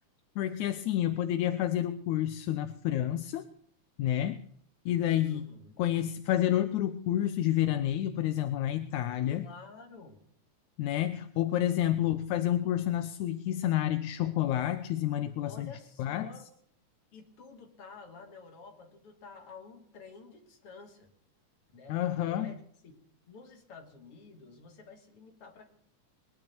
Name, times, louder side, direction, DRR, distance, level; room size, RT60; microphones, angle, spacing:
voice 1, 0.4-3.5 4.0-4.4 4.9-5.5 5.8-9.5 10.8-15.7 16.0-16.3 21.9-22.5, left 12 dB, 80° left, 9 dB, 2.2 m, -29 dB
voice 2, 5.3-5.8 9.4-10.2 15.4-16.5 17.1-21.1 21.7-22.9 23.3-25.7, left 4 dB, 50° left, 2 dB, 3.6 m, -50 dB
21.5 x 10.5 x 6.0 m, 0.65 s
omnidirectional pair, 3.4 m